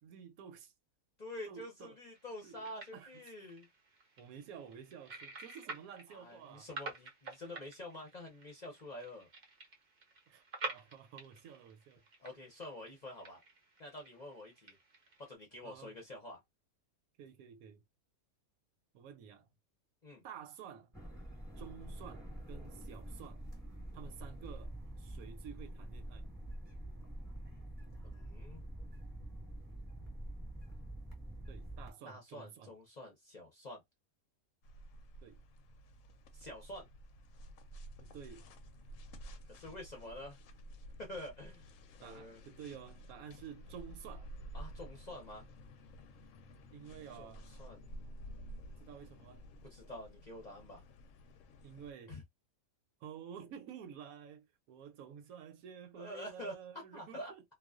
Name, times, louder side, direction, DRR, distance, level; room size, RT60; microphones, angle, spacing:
voice 1, 0.0-0.7 1.5-2.0 2.4-3.5 4.2-6.7 10.3-12.0 15.6-16.0 17.2-17.8 18.9-19.5 20.2-21.0 21.6-23.4 23.9-26.3 31.5-32.7 35.2-35.4 38.0-38.5 42.0-44.3 46.7-47.5 48.8-49.5 51.6-52.2 53.0-57.4, right 8 dB, 75° right, 1.0 m, -51 dB
voice 2, 1.2-3.7 6.1-9.3 12.2-13.4 13.8-14.7 15.2-16.4 20.0-20.2 28.0-28.6 32.0-33.8 36.3-36.9 39.5-40.4 41.0-41.6 42.0-42.4 44.5-45.5 47.1-47.9 49.6-50.8 52.1-52.2 55.9-56.6 56.9-57.3, left 1 dB, 40° left, 0.6 m, -47 dB
sound 1, 2.1-15.3, right 3 dB, 55° right, 0.5 m, -50 dB
sound 2, 20.9-31.9, right 1 dB, ahead, 1.1 m, -46 dB
sound 3, 34.6-51.9, equal, 70° left, 0.9 m, -52 dB
2.4 x 2.2 x 2.3 m
omnidirectional pair, 1.5 m